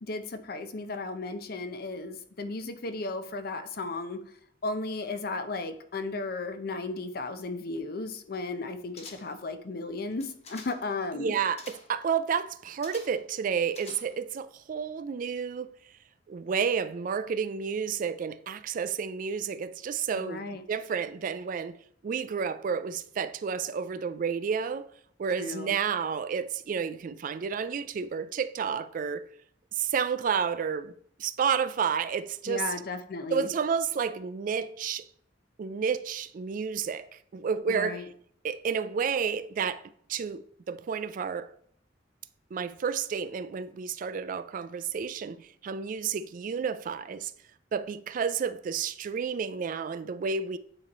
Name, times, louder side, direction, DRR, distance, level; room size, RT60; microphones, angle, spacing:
voice 1, 0.0-4.2 4.6-11.3 20.1-20.6 25.4-25.8 32.5-33.5 37.7-38.1, left 3 dB, 60° left, 0.6 m, -35 dB
sound 1, 9.0-9.5 10.1-10.9 11.6-12.0 12.8-13.3 13.7-14.4 14.7-14.8, left 3 dB, 35° left, 1.0 m, -48 dB
voice 2, 11.2-15.8 16.3-21.8 22.0-24.9 25.2-29.3 29.7-30.9 31.2-32.7 33.3-35.1 35.6-38.0 38.4-41.5 42.5-47.3 47.7-50.6, right 6 dB, 50° right, 0.3 m, -31 dB
8.8 x 3.1 x 4.1 m
head